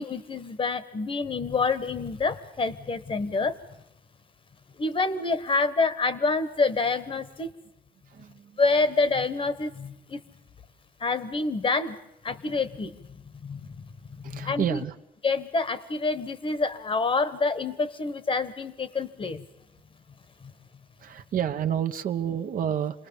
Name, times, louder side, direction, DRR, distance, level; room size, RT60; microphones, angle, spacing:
voice 1, 0.0-3.6 4.8-7.5 8.6-10.2 11.0-12.0 12.2-12.9 13.4-13.9 14.2-14.8 15.2-19.4, left 3 dB, 35° left, 14 dB, 1.1 m, -27 dB
voice 2, 8.1-8.6 14.2-15.0 21.0-23.1, right 9 dB, 60° right, 8 dB, 0.9 m, -29 dB
27.0 x 20.0 x 7.1 m, 0.84 s
cardioid pair, 120°, 16 cm